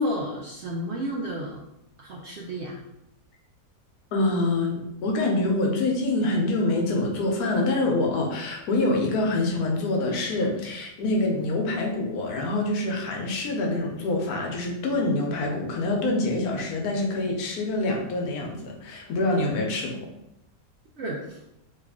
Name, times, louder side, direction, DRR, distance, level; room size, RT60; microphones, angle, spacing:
voice 1, 0.0-1.6 2.0-2.8 21.0-21.4, equal, 70° right, -2 dB, 0.6 m, -31 dB
voice 2, 4.1-20.0, left 2 dB, 80° left, 1 dB, 1.2 m, -26 dB
3.2 x 2.4 x 3.5 m, 0.85 s
omnidirectional pair, 1.6 m